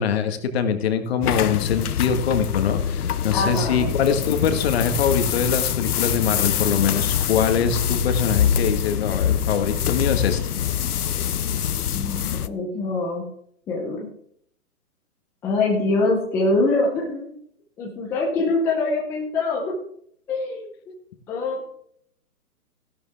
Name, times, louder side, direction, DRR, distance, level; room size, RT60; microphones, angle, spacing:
voice 1, 0.0-10.4, left 7 dB, 40° left, 7 dB, 1.7 m, -23 dB
sound 1, 1.2-12.5, left 9 dB, 75° left, 0.8 m, -24 dB
voice 2, 3.3-3.9 11.9-13.3 13.7-14.1 15.4-17.3 17.8-19.8 20.3-20.7 21.3-21.7, left 3 dB, 5° left, -3 dB, 0.7 m, -24 dB
15.5 x 11.5 x 3.5 m, 0.67 s
hypercardioid pair, 155°, 46 cm